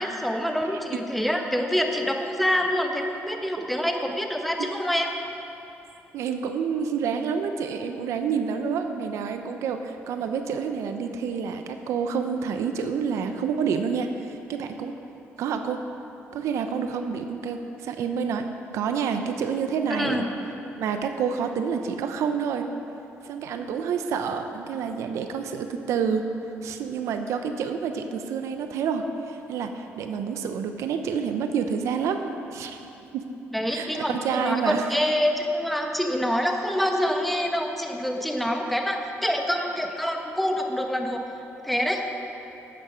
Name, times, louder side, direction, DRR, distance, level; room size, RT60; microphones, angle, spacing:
voice 1, 0.0-5.1 19.9-20.3 33.5-41.2 41.6-42.0, equal, ahead, 3 dB, 1.2 m, -26 dB
voice 2, 0.7-1.0 6.1-14.9 15.4-15.8 16.3-20.2 20.8-22.7 23.2-26.3 26.6-32.8 33.1-33.2 33.7-34.8 38.2-38.3, right 6 dB, 75° right, 7 dB, 0.7 m, -28 dB
12.0 x 8.8 x 5.1 m, 2.9 s
cardioid pair, 80°, 5 cm